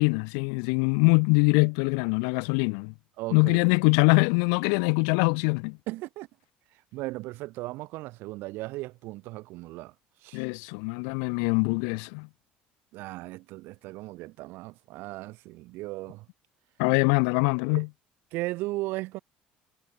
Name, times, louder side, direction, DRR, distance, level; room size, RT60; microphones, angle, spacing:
voice 1, 0.0-2.9 3.3-5.8 10.3-12.3 16.8-17.9, left 40 dB or more, 85° left, 6.2 m, -23 dB
voice 2, 3.2-3.6 5.9-6.3 6.9-9.9 10.2-10.4 12.9-16.2 17.7-17.9 18.3-19.2, right 20 dB, 75° right, 4.5 m, -36 dB
supercardioid pair, 90°, 4 cm